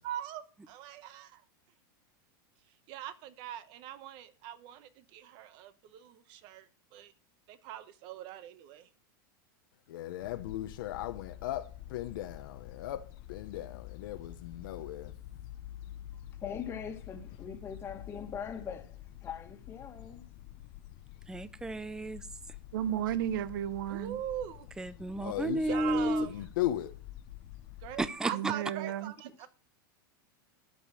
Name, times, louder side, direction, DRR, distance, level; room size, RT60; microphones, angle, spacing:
voice 1, 0.0-1.4 2.9-7.1 7.5-8.9 23.9-24.7 25.6-26.4 27.8-29.5, right 11 dB, 45° right, 1.1 m, -42 dB
voice 2, 9.9-13.0 13.3-15.1 25.2-26.9, left 13 dB, 70° left, 1.0 m, -37 dB
sound 1, 10.2-28.1, left 13 dB, 45° left, 0.8 m, -48 dB
voice 3, 16.4-18.9 19.2-20.2, left 7 dB, 20° left, 1.7 m, -41 dB
voice 4, 21.3-22.2 24.8-26.3 28.0-28.3, right 1 dB, 5° right, 0.5 m, -32 dB
voice 5, 22.7-24.2 28.3-29.1, right 11 dB, 65° right, 0.9 m, -33 dB
12.5 x 5.4 x 7.6 m
supercardioid pair, 150°, 12 cm